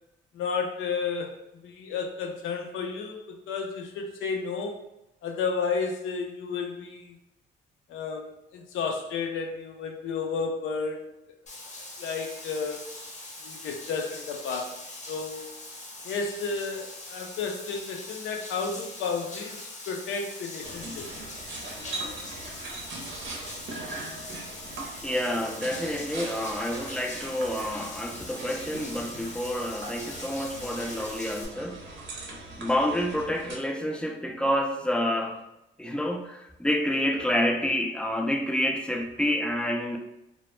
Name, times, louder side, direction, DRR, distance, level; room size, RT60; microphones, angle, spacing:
voice 1, 0.3-1.3 1.6-4.8 5.2-7.1 7.9-11.1 12.0-12.8 13.4-14.8 15.1-15.5 16.0-21.1, left 5 dB, 85° left, 3 dB, 0.5 m, -32 dB
Bathtub (filling or washing), 11.5-31.5, left 2 dB, 35° left, 0.7 m, -42 dB
sound 1, 20.6-33.6, right 2 dB, 70° right, 0.6 m, -41 dB
voice 2, 25.0-31.8 32.1-32.3 32.6-35.4 35.8-40.0, left 1 dB, 5° left, 2 dB, 0.3 m, -28 dB
2.0 x 2.0 x 3.0 m, 0.88 s
cardioid pair, 90°, 20 cm